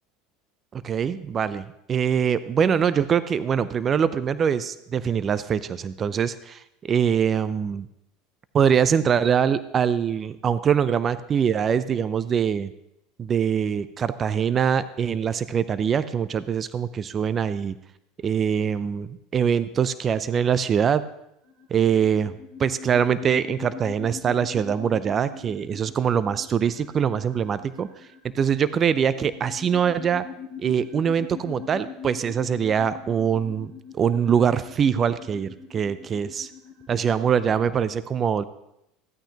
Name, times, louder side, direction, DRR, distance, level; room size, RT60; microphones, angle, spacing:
voice 1, 0.7-7.9 8.5-12.7 13.2-17.8 18.2-21.0 21.7-22.3 22.6-27.9 28.3-30.2 30.6-36.5 36.9-38.4, right 7 dB, 35° right, 15 dB, 0.5 m, -23 dB
sound 1, 21.4-37.8, left 6 dB, 65° right, 2.4 m, -43 dB
15.0 x 9.0 x 2.9 m, 0.81 s
hypercardioid pair, 95°, 0 cm